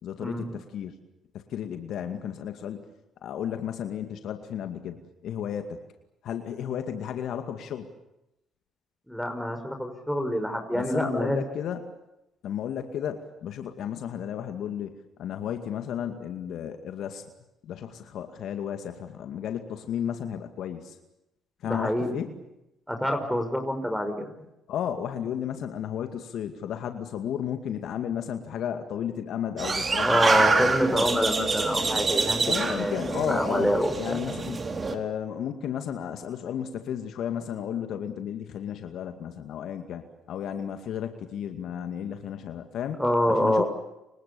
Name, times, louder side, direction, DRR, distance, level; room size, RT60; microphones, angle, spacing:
voice 1, 0.0-0.9 1.3-2.8 3.2-5.8 6.2-7.9 10.7-11.9 12.4-17.2 17.6-21.0 21.6-22.3 24.7-31.1 32.5-33.7 34.0-34.6 34.9-40.0 40.3-43.0 43.3-43.6, left 9 dB, 65° left, 7 dB, 2.2 m, -33 dB
voice 2, 9.1-11.4 21.6-22.2 22.9-24.3 30.0-34.2 43.0-43.7, equal, ahead, 4 dB, 5.6 m, -26 dB
sound 1, 29.6-34.9, right 4 dB, 35° right, 3.7 m, -26 dB
29.5 x 25.0 x 7.0 m, 0.90 s
hypercardioid pair, 55°, 0 cm